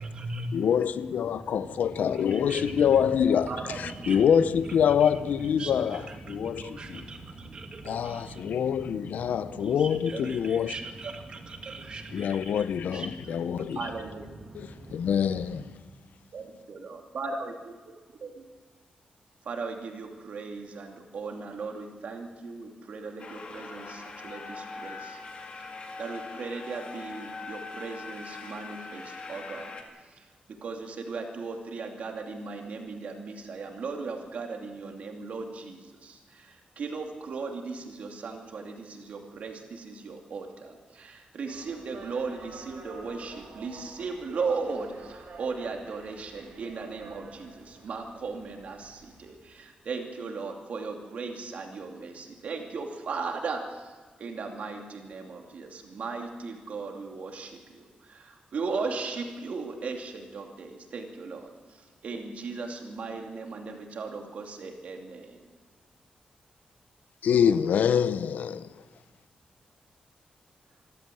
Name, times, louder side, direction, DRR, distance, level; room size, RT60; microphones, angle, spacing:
voice 1, 0.0-15.7, right 2 dB, 40° right, 2.3 m, -41 dB
voice 2, 0.5-6.0 6.3-6.8 7.9-10.7 12.1-13.0 13.3-13.9 14.5-15.6 67.2-68.7, left 8 dB, 90° left, 0.7 m, -25 dB
voice 3, 3.5-3.8 10.1-10.3 13.8-14.3 16.3-17.5 18.2-18.4 19.4-25.2 25.6-25.7 26.0-29.8 30.2-53.9 54.2-65.4, right 4 dB, 55° right, 2.6 m, -37 dB
sound 1, 23.2-29.8, left 4 dB, 40° left, 2.2 m, -42 dB
sound 2, 41.5-49.3, right 4 dB, 85° right, 4.3 m, -49 dB
25.5 x 13.0 x 7.7 m
wide cardioid pair, 175°, 3 cm